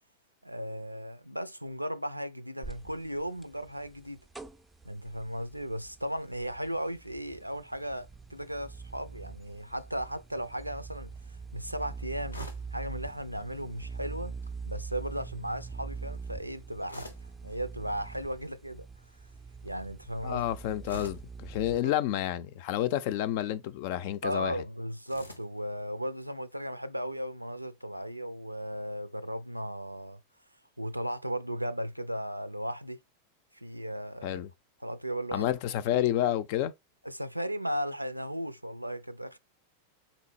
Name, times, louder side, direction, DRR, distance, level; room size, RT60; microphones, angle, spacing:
voice 1, 0.4-4.2 4.8-11.1 11.5-12.4 12.7-14.4 14.7-17.1 17.4-18.9 19.6-20.4 21.6-21.9 24.2-30.2 30.8-33.0 33.5-34.4 34.8-35.5 37.0-39.4, equal, 90° right, 0.4 m, -36 dB
sound 1, 2.6-21.8, right 5 dB, 5° right, 0.5 m, -44 dB
sound 2, 12.3-12.8 14.4-14.8 16.9-17.4 18.0-18.2 20.8-21.3 22.6-23.1 25.1-25.6, equal, 85° left, 0.8 m, -45 dB
voice 2, 20.2-24.6 34.2-34.5 35.3-36.7, left 12 dB, 45° left, 0.4 m, -30 dB
4.1 x 3.8 x 2.7 m
figure-of-eight pair, 90°, 0 cm